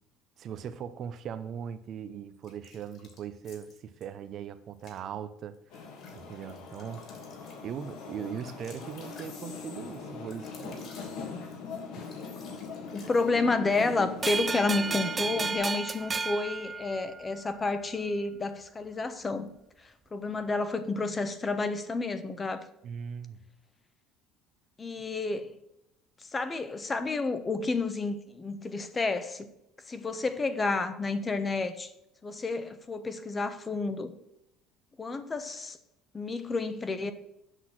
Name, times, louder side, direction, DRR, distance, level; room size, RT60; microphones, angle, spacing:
voice 1, 0.4-7.0 7.6-10.9 22.8-23.4, right 8 dB, 45° right, 0.8 m, -40 dB
sound 1, 2.4-4.1 4.7-5.0 5.5-13.5, left 4 dB, 45° left, 2.9 m, -54 dB
sound 2, 5.7-15.6, left 5 dB, 70° left, 2.4 m, -41 dB
voice 2, 12.9-19.5 19.8-22.6 24.8-25.6 26.3-29.5 29.9-31.9 32.2-34.1 35.0-35.8 36.1-37.1, left 3 dB, 20° left, 1.0 m, -30 dB
sound 3, 14.2-17.5, right 4 dB, 20° right, 0.5 m, -33 dB
8.1 x 6.2 x 6.0 m
cardioid pair, 135°, 0 cm